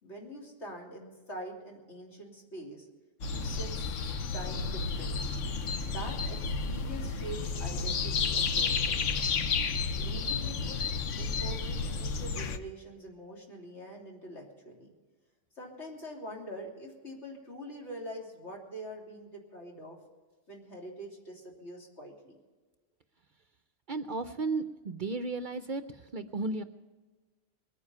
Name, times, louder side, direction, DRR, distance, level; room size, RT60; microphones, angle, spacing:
voice 1, 0.0-2.9 3.3-9.2 9.9-10.8 11.2-14.9 15.5-20.0 20.5-22.4, equal, 65° left, -2 dB, 3.5 m, -44 dB
sound 1, 3.2-12.6, left 4 dB, 90° left, 1.2 m, -31 dB
voice 2, 23.9-26.6, right 3 dB, 55° right, 10 dB, 0.6 m, -34 dB
21.5 x 9.8 x 5.5 m, 1.3 s
omnidirectional pair, 1.2 m